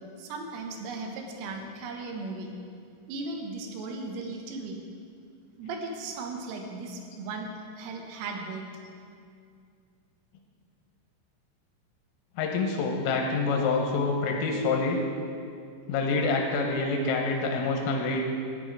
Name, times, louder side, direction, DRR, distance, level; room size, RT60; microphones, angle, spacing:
voice 1, 0.2-2.5 3.1-4.8 5.6-7.5 7.8-8.7, right 3 dB, 85° right, 2 dB, 3.8 m, -36 dB
voice 2, 12.4-15.0 15.9-18.2, left 3 dB, 85° left, 1 dB, 3.6 m, -26 dB
14.5 x 9.4 x 4.7 m, 2.3 s
omnidirectional pair, 5.7 m